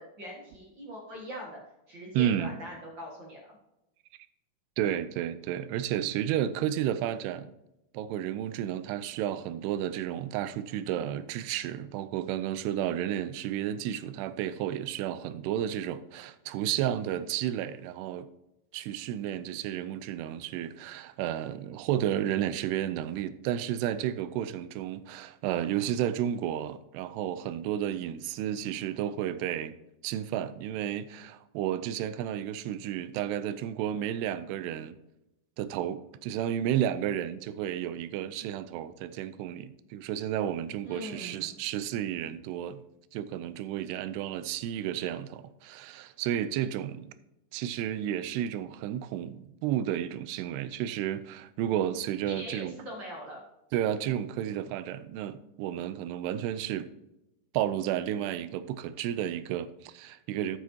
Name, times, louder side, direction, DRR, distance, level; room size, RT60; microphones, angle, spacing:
voice 1, 0.0-1.6 1.9-3.4 40.8-41.5 52.3-53.4, equal, 55° right, 1.3 m, -42 dB
voice 2, 2.2-2.5 4.8-7.5 7.9-18.3 18.7-29.8 30.0-35.0 35.6-42.8 43.1-47.1 47.5-52.7 53.7-56.9 57.5-60.6, right 11 dB, 80° right, 2.6 m, -32 dB
12.5 x 7.6 x 2.8 m
omnidirectional pair, 5.0 m